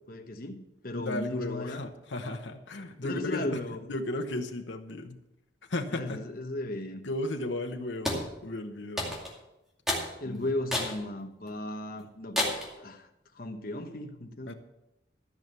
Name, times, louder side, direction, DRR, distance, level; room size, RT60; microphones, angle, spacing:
voice 1, 0.1-1.8 3.0-3.8 5.9-7.0 10.2-12.4 12.8-13.1 13.3-14.5, left 1 dB, 50° left, 5 dB, 1.1 m, -36 dB
voice 2, 0.9-3.6 3.9-5.2 5.7-6.2 7.0-9.1 10.2-10.5 14.5-14.6, left 1 dB, 85° left, 5 dB, 1.1 m, -35 dB
sound 1, 8.1-8.3 9.0-9.4 9.9-10.1 10.7-11.0 11.5-11.6 12.4-12.7, left 1 dB, ahead, 2.4 m, -30 dB
14.0 x 6.1 x 6.8 m, 0.89 s
head